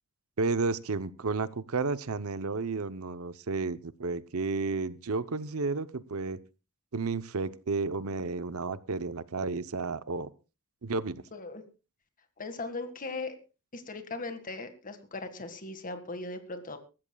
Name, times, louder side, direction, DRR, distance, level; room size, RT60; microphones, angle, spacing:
voice 1, 0.4-6.4 6.9-10.3 10.8-11.2, right 4 dB, 70° right, 15 dB, 0.8 m, -32 dB
voice 2, 11.3-11.7 12.4-13.4 13.7-16.8, left 3 dB, 40° left, 8 dB, 1.8 m, -38 dB
23.5 x 13.5 x 2.3 m, 0.31 s
head